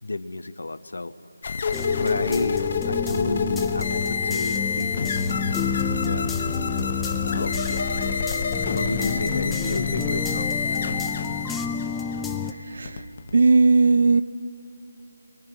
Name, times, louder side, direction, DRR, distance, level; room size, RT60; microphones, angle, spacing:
voice 1, 0.0-1.1 1.9-5.2 5.9-6.3 7.2-7.6 7.8-8.2 8.7-10.9, left 2 dB, 75° left, 12 dB, 0.9 m, -32 dB
sound 1, 1.4-13.3, left 5 dB, 40° left, 0.9 m, -27 dB
sound 2, 1.7-12.5, left 6 dB, 5° left, 0.5 m, -30 dB
sound 3, 3.5-13.5, right 1 dB, 35° right, 2.1 m, -48 dB
voice 2, 12.7-13.0 13.3-14.2, right 3 dB, 55° right, 15 dB, 0.6 m, -17 dB
28.5 x 23.0 x 6.2 m, 2.9 s
figure-of-eight pair, 165°, 0 cm